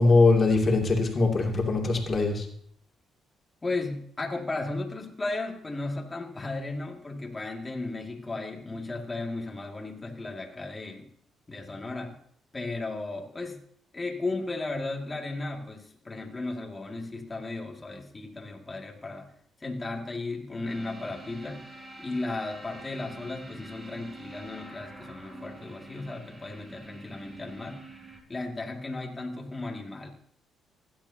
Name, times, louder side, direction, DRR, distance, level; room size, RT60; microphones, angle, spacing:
voice 1, 0.0-2.5, left 3 dB, 40° left, 1 dB, 2.9 m, -22 dB
voice 2, 3.6-11.1 11.5-12.1 12.5-13.6 13.9-19.3 19.6-21.6 22.0-27.8 28.3-30.1, left 2 dB, 25° left, 0 dB, 2.4 m, -35 dB
sound 1, 20.7-28.2, right 1 dB, 25° right, 5.8 m, -46 dB
16.5 x 12.0 x 2.9 m, 0.64 s
cardioid pair, 90°, 0 cm